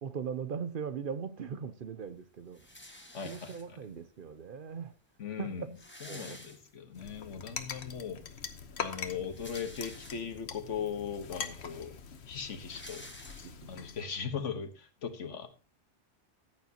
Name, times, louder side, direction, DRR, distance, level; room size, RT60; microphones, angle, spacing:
voice 1, 0.0-2.6 3.2-4.9 5.4-5.7 6.1-6.4 13.4-13.8, right 6 dB, 55° right, 0.7 m, -39 dB
sound 1, 2.5-4.0 4.8-4.9 5.1-5.2 5.5-7.1 7.5-7.6 9.0-10.5 11.2-11.3 11.5-13.9, left 1 dB, 10° left, 1.5 m, -51 dB
voice 2, 3.1-3.8 5.2-5.7 6.0-8.2 8.8-11.9 12.3-13.0 13.7-15.5, left 7 dB, 85° left, 1.5 m, -39 dB
sound 2, 6.9-14.0, left 6 dB, 65° left, 1.2 m, -43 dB
14.0 x 9.0 x 2.9 m
omnidirectional pair, 1.2 m